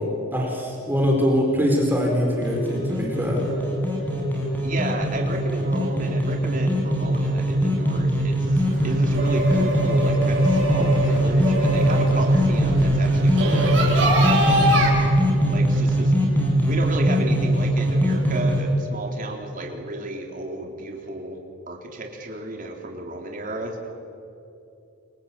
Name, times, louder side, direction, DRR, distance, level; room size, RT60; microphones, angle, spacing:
voice 1, 0.0-3.4, equal, 10° right, -1 dB, 4.5 m, -23 dB
sound 1, 2.4-18.6, equal, 10° left, 6.8 m, -21 dB
voice 2, 4.6-14.9 15.5-16.2 16.7-21.4 21.7-23.8, right 1 dB, 40° right, 2 dB, 3.6 m, -33 dB
sound 2, 8.5-14.9, right 1 dB, 60° right, 7.7 m, -25 dB
28.5 x 24.5 x 8.5 m, 2.7 s
head